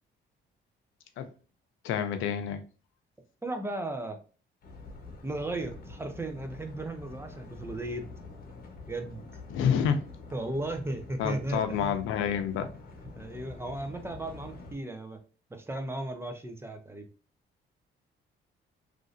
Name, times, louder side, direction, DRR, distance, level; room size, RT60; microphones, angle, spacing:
voice 1, 1.8-2.6 9.5-10.0 11.2-12.7, left 8 dB, 85° left, 0.5 m, -28 dB
voice 2, 3.4-4.2 5.2-8.1 8.9-9.2 10.3-12.0 13.1-15.2 15.5-17.1, right 2 dB, 10° right, 0.5 m, -35 dB
sound 1, 4.6-14.7, left 3 dB, 50° left, 0.9 m, -47 dB
3.0 x 2.6 x 2.5 m
cardioid pair, 90°, 20 cm